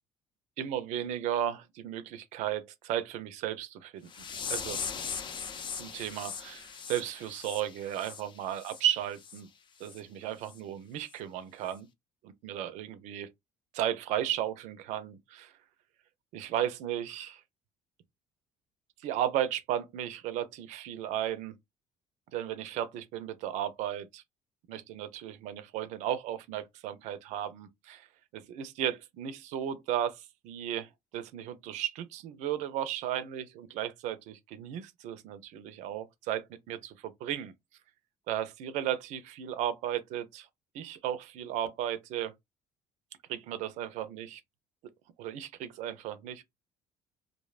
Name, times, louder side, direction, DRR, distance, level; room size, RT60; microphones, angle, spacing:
voice 1, 0.6-4.8 5.8-9.5 9.8-11.9 12.2-13.3 13.7-15.5 16.3-17.4 19.0-21.5 22.3-24.2 24.7-28.1 28.3-37.5 38.3-40.5 40.7-42.3 43.3-44.4 45.2-46.4, right 11 dB, 75° right, 0.4 m, -35 dB
sound 1, 4.1-8.8 9.2-9.4 9.8-10.0 10.5-10.6 11.1-11.2, left 6 dB, 40° left, 0.5 m, -39 dB
2.6 x 2.1 x 2.3 m
supercardioid pair, 85°, 12 cm